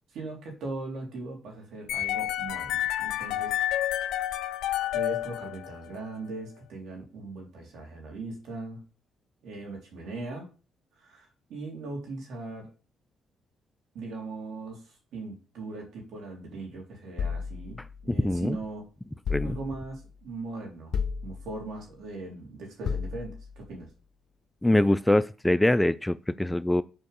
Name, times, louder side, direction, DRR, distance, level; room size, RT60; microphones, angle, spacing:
voice 1, 0.1-3.6 4.9-8.8 9.4-10.5 11.0-12.7 13.9-18.9 19.4-20.9 21.2-23.9, right 3 dB, 75° right, 3.8 m, -39 dB
sound 1, 1.9-6.0, left 12 dB, 80° left, 0.7 m, -29 dB
sound 2, 17.2-18.6 19.3-20.1 20.9-21.8 22.9-23.7, left 6 dB, 55° left, 0.9 m, -34 dB
voice 2, 18.1-18.6 19.3-19.6 24.6-26.8, left 1 dB, 10° left, 0.3 m, -23 dB
7.8 x 4.6 x 6.9 m
cardioid pair, 90°, 0 cm